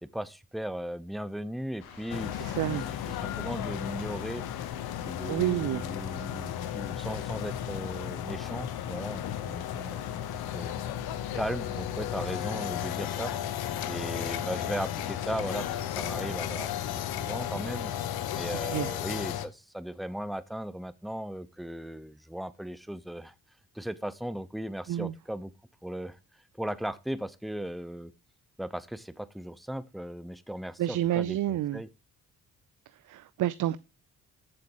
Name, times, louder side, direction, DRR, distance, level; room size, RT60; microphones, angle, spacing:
voice 1, 0.0-2.8 3.2-4.4 5.1-10.9 11.3-13.3 13.9-17.9 18.3-23.3 23.7-25.5 25.8-26.2 26.6-28.1 28.6-31.9, right 1 dB, ahead, 0.9 m, -37 dB
sound 1, 1.8-17.6, left 6 dB, 80° left, 1.9 m, -49 dB
sound 2, 2.1-19.5, left 11 dB, 60° left, 1.1 m, -34 dB
voice 2, 2.3-2.9 5.3-5.9 18.6-18.9 24.9-25.1 30.8-31.8 32.9-33.8, right 13 dB, 45° right, 0.6 m, -29 dB
14.5 x 7.8 x 3.0 m
hypercardioid pair, 45°, 43 cm